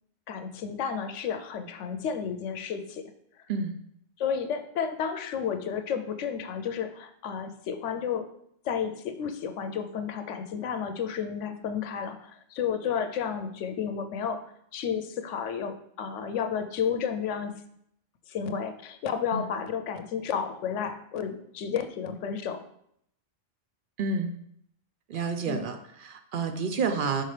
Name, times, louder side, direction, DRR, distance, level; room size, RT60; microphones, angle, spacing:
voice 1, 0.3-3.0 4.2-8.3 8.6-14.4 14.7-17.5 18.3-22.6 25.5-25.6, left 7 dB, 75° left, 8 dB, 0.9 m, -32 dB
voice 2, 24.0-24.3 25.1-27.2, right 4 dB, 60° right, 7 dB, 0.5 m, -29 dB
5.6 x 5.2 x 3.2 m, 0.71 s
omnidirectional pair, 1.3 m